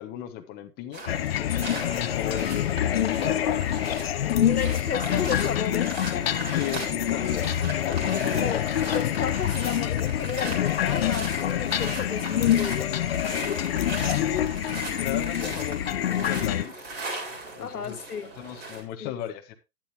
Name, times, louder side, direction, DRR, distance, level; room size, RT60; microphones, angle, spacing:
voice 1, 0.0-3.4 6.5-7.5 7.9-8.4 14.1-14.5 14.7-16.9 17.6-18.0 18.4-19.5, left 10 dB, 20° left, 1.3 m, -36 dB
sound 1, 0.9-18.8, right 2 dB, 20° right, 3.5 m, -38 dB
sound 2, 1.1-16.6, left 11 dB, 40° left, 0.7 m, -26 dB
voice 2, 3.2-3.6 4.2-6.4 8.4-8.6 8.9-13.2 17.6-18.3 19.0-19.2, left 7 dB, 75° left, 1.1 m, -33 dB
11.5 x 10.5 x 2.9 m
figure-of-eight pair, 130°, 46 cm